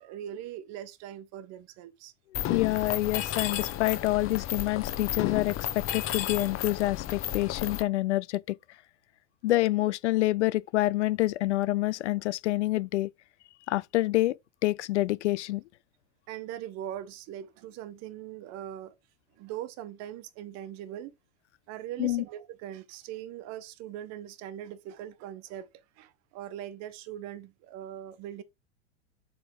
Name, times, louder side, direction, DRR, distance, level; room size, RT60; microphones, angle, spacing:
voice 1, 0.0-2.1 16.3-19.0 19.4-21.1 21.7-25.7 26.0-28.4, right 11 dB, 50° right, 1.3 m, -41 dB
Mechanisms, 2.3-7.8, left 12 dB, 35° left, 1.3 m, -32 dB
voice 2, 2.5-8.6 9.4-13.1 13.7-15.6 22.0-22.2, left 17 dB, 75° left, 0.6 m, -27 dB
7.6 x 3.7 x 4.8 m
hypercardioid pair, 100°, 35 cm